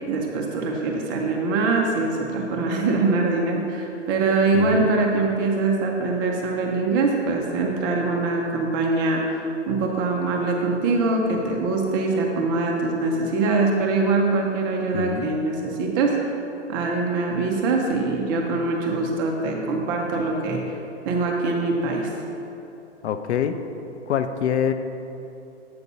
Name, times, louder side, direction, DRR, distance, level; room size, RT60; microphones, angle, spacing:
voice 1, 0.0-9.4 9.7-16.3 16.7-20.6 21.1-22.1, right 3 dB, 20° right, 0 dB, 0.4 m, -23 dB
voice 2, 4.5-4.9 14.9-15.3 23.0-23.6 24.1-24.7, left 8 dB, 70° left, 9 dB, 0.6 m, -25 dB
8.2 x 4.1 x 5.4 m, 3.0 s
hypercardioid pair, 145°, 35 cm